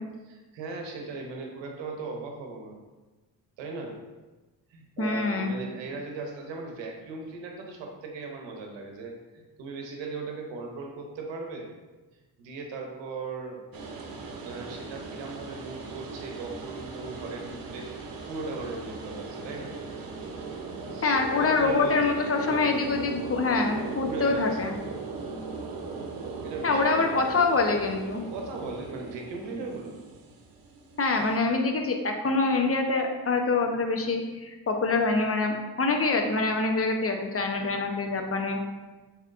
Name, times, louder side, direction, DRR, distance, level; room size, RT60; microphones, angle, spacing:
voice 1, 0.3-2.8 3.6-4.0 4.7-11.7 12.4-13.6 14.4-17.9 18.2-19.8 20.9-22.8 24.0-24.7 26.4-27.2 28.3-29.9, right 3 dB, 90° right, 2 dB, 0.8 m, -38 dB
voice 2, 5.0-5.5 21.0-24.7 26.6-28.2 31.0-38.6, left 3 dB, 30° left, 3 dB, 0.8 m, -25 dB
sound 1, 13.7-31.4, right 4 dB, 55° right, 0.8 m, -39 dB
7.2 x 2.9 x 2.5 m, 1.2 s
supercardioid pair, 45°, 43 cm